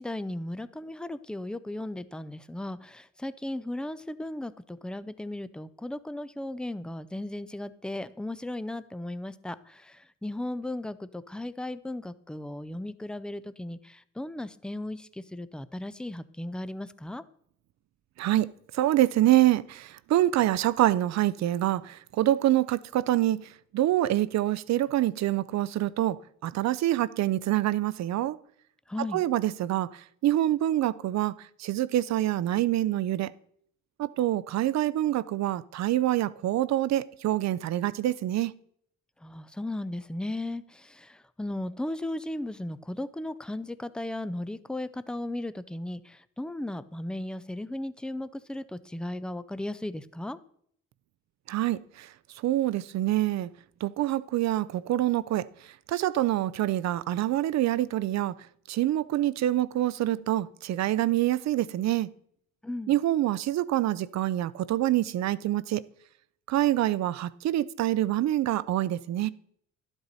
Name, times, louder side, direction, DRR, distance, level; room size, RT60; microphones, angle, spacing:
voice 1, 0.0-17.2 28.9-29.2 39.2-50.4 62.6-62.9, left 1 dB, 5° left, 0.4 m, -36 dB
voice 2, 18.2-23.5 23.7-28.4 29.1-29.9 30.2-31.3 31.6-33.3 34.0-38.5 51.5-52.1 52.4-53.5 53.8-55.4 55.9-58.3 58.7-62.1 62.9-65.8 66.5-69.3, right 14 dB, 65° right, 0.5 m, -26 dB
12.0 x 8.0 x 4.1 m
cardioid pair, 90°, 30 cm